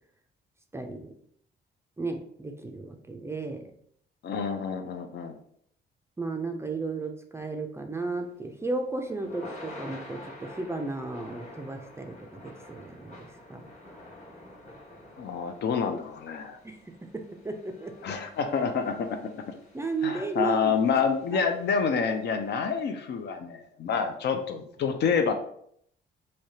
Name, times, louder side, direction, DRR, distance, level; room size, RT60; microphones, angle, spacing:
voice 1, 0.7-1.1 2.0-3.6 6.2-13.7 16.6-18.0 19.7-21.0 21.3-21.4, right 3 dB, 15° right, 4 dB, 0.4 m, -34 dB
voice 2, 4.2-5.4 15.2-16.6 18.0-19.2 19.5-19.6 20.0-25.3, left 6 dB, 60° left, 6 dB, 0.5 m, -28 dB
Thunder / Rain, 8.3-22.5, left 1 dB, 35° left, 1.2 m, -48 dB
3.3 x 2.8 x 2.7 m, 0.67 s
cardioid pair, 90°, 20 cm